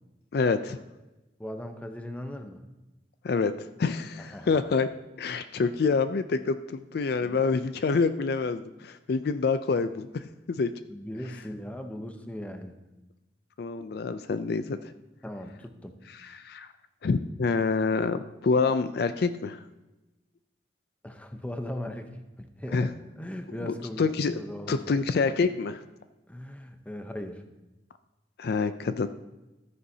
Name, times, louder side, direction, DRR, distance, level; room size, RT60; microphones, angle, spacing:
voice 1, 0.3-0.8 3.2-4.9 5.2-10.2 10.5-10.7 13.6-14.9 16.2-16.7 17.0-19.6 22.7-22.9 23.6-24.4 24.7-25.8 28.4-29.1, left 4 dB, 60° left, 11 dB, 0.4 m, -27 dB
voice 2, 1.4-2.6 4.2-4.6 10.9-12.8 15.2-16.0 21.0-22.1 22.4-22.9 23.2-24.1 24.3-24.8 26.3-27.4, left 1 dB, 10° left, 6 dB, 0.7 m, -38 dB
13.0 x 9.5 x 2.8 m, 1.0 s
head